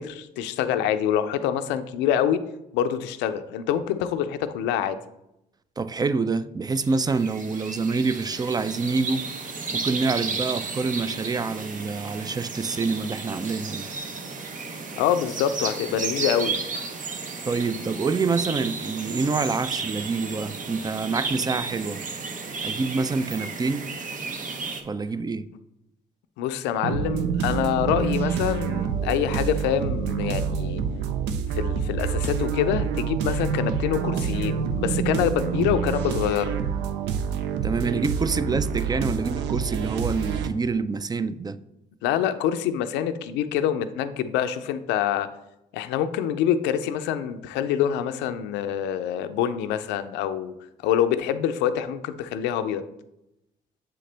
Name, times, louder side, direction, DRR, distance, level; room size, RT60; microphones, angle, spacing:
voice 1, 0.0-2.4 2.7-5.0 14.9-16.6 26.4-30.8 31.5-36.6 42.0-45.3 45.7-50.5 50.8-52.8, left 9 dB, 90° left, 0.4 m, -25 dB
voice 2, 5.8-9.2 9.7-13.9 17.5-22.0 22.6-23.9 24.8-25.5 37.6-41.6, right 4 dB, 20° right, 0.4 m, -26 dB
sound 1, 6.7-24.8, right 4 dB, 50° right, 0.8 m, -33 dB
sound 2, 26.8-40.5, right 7 dB, 85° right, 0.5 m, -27 dB
7.6 x 3.8 x 3.3 m
supercardioid pair, 70°, 18 cm